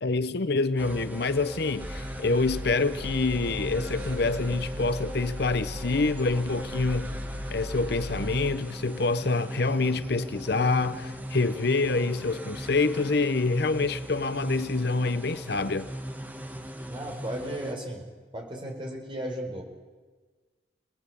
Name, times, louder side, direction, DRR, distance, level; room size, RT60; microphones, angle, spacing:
voice 1, 0.0-7.2 7.5-15.9, left 3 dB, 55° left, 0.8 m, -26 dB
sound 1, 0.8-17.7, equal, 10° right, 1.5 m, -39 dB
sound 2, 1.8-8.6, equal, 55° right, 1.8 m, -38 dB
voice 2, 16.9-18.0 18.3-19.6, right 1 dB, 25° right, 5.5 m, -35 dB
29.5 x 19.5 x 8.5 m
head